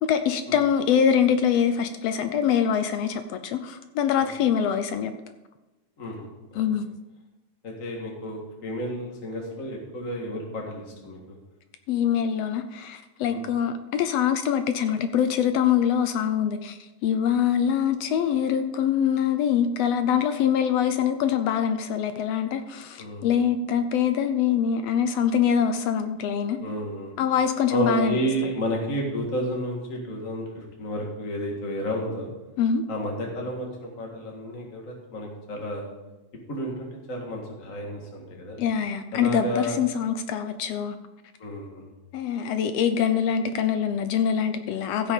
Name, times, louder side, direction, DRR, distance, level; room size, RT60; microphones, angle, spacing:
voice 1, 0.0-5.1 6.6-6.9 11.9-26.6 27.2-28.2 28.4-28.5 32.6-32.8 38.6-40.9 42.1-45.1, left 8 dB, 75° left, 9 dB, 1.6 m, -24 dB
voice 2, 6.0-6.3 6.5-6.6 7.6-11.2 13.3-13.4 23.0-23.5 26.6-27.1 27.7-32.3 32.9-35.9 36.5-38.6 39.1-39.8 41.4-41.9 45.0-45.1, equal, 35° left, -1 dB, 1.7 m, -31 dB
15.5 x 6.3 x 5.3 m, 1.1 s
omnidirectional pair, 3.3 m